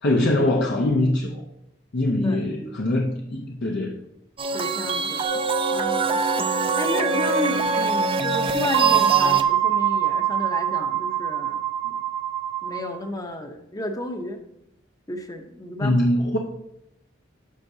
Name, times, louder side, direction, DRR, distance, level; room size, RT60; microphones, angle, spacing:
voice 1, 0.0-1.4 1.9-4.0 15.8-16.4, left 1 dB, 60° left, 0 dB, 0.7 m, -22 dB
sound 1, 4.4-9.4, right 4 dB, 25° right, 0.4 m, -24 dB
voice 2, 4.5-5.2 5.7-12.0 12.6-14.4 15.1-16.0, left 1 dB, 20° left, 5 dB, 0.8 m, -32 dB
sound 2, 5.2-7.5 8.7-13.0, right 9 dB, 80° right, 1.4 m, -24 dB
10.0 x 6.3 x 2.7 m, 0.83 s
head